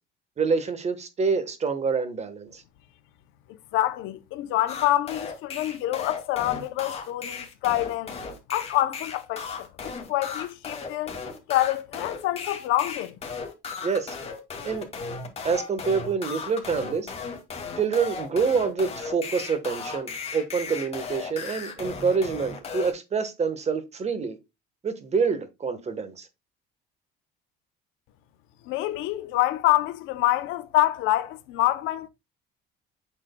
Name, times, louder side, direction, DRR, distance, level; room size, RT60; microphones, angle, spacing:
voice 1, 0.4-2.6 13.8-14.1 14.6-14.9 15.4-17.1 17.8-24.4 24.8-26.3, right 5 dB, 35° right, 1.3 m, -26 dB
voice 2, 3.7-8.2 8.5-11.2 11.5-13.1 28.7-32.1, left 15 dB, 80° left, 0.7 m, -26 dB
sound 1, 4.7-22.9, left 5 dB, 30° left, 2.3 m, -36 dB
8.1 x 6.1 x 2.2 m
cardioid pair, 110°, 20 cm